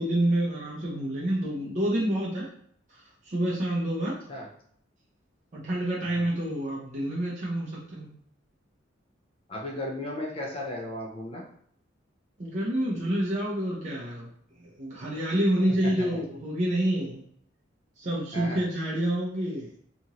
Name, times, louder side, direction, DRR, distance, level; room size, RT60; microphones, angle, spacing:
voice 1, 0.0-2.5 2.9-4.2 5.5-8.1 12.4-14.3 14.6-17.2 18.0-19.7, right 1 dB, 40° right, -5 dB, 0.5 m, -28 dB
voice 2, 9.5-11.4 15.8-16.2 18.3-18.6, left 1 dB, 30° left, -1 dB, 0.5 m, -35 dB
2.8 x 2.5 x 2.8 m, 0.65 s
head